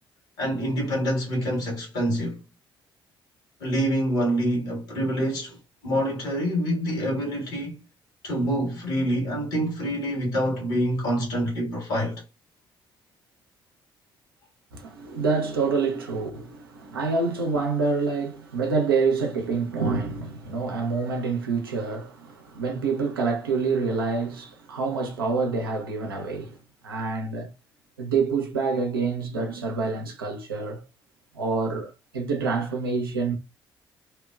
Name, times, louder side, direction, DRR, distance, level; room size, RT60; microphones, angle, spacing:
voice 1, 0.4-2.4 3.6-5.6 5.8-7.8 8.2-12.2, equal, 70° left, 1.5 m, -26 dB
voice 2, 14.7-26.6 26.8-27.5 28.0-30.8 31.3-33.4, right 4 dB, 80° right, 0.5 m, -27 dB
2.9 x 2.1 x 2.3 m
figure-of-eight pair, 45°, 12 cm